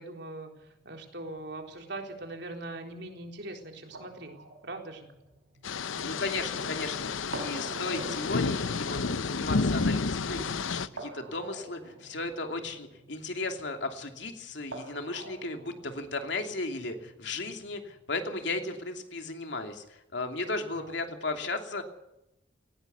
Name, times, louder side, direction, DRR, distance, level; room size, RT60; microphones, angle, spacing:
voice 1, 0.0-4.4 4.6-5.1 5.9-6.2 10.4-10.7 12.7-12.8 18.4-18.5 20.4-21.0, right 2 dB, 60° right, 3 dB, 4.0 m, -42 dB
sound 1, 0.6-18.2, right 2 dB, 85° right, 5.5 m, -48 dB
sound 2, 5.6-10.9, left 4 dB, 85° left, 0.7 m, -30 dB
voice 2, 6.0-21.8, left 2 dB, 65° left, 4 dB, 2.9 m, -35 dB
18.5 x 17.5 x 8.3 m, 0.88 s
head